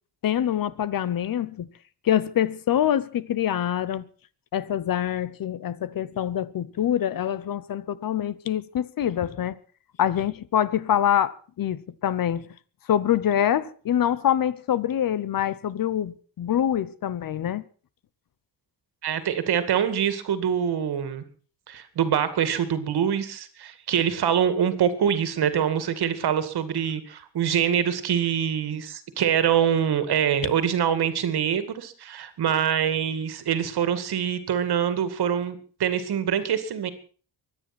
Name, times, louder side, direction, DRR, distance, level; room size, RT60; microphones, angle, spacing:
voice 1, 0.2-1.7 2.0-4.1 4.5-9.6 10.0-12.5 12.9-17.6, left 10 dB, 50° left, 0.9 m, -25 dB
voice 2, 19.0-21.2 21.7-36.9, right 8 dB, 60° right, 2.2 m, -24 dB
23.5 x 10.0 x 6.0 m
wide cardioid pair, 170°, 42 cm